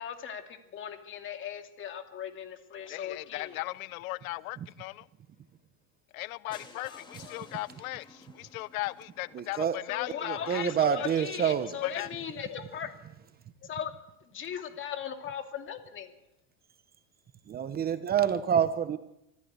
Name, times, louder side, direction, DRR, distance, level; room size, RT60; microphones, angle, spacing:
voice 1, 0.0-3.6 6.7-7.6 9.9-12.9 13.6-13.9 14.3-16.2, left 9 dB, 30° left, 2.6 m, -38 dB
voice 2, 2.9-5.1 6.1-11.2 11.8-12.1, left 19 dB, 85° left, 0.7 m, -37 dB
sound 1, 6.5-10.4 11.0-11.1 11.4-11.5 11.8-11.9 12.0-12.1, left 2 dB, 10° left, 3.1 m, -54 dB
voice 3, 9.3-9.8 10.3-11.7 17.5-19.0, right 8 dB, 20° right, 1.0 m, -27 dB
25.0 x 15.0 x 8.2 m
supercardioid pair, 150°, 41 cm